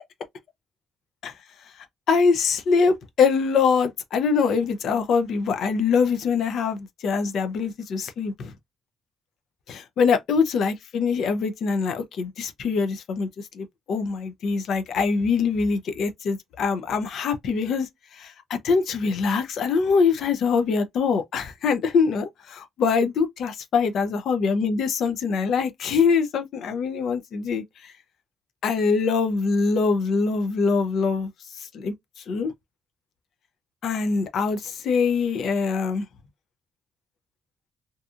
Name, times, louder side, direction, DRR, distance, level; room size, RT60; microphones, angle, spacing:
voice 1, 2.1-8.5 9.7-13.3 13.5-22.2 22.8-27.9 28.6-31.3 31.6-32.5 33.8-36.1, left 5 dB, 70° left, 0.5 m, -23 dB
2.6 x 2.4 x 2.4 m
cardioid pair, 90°, 0 cm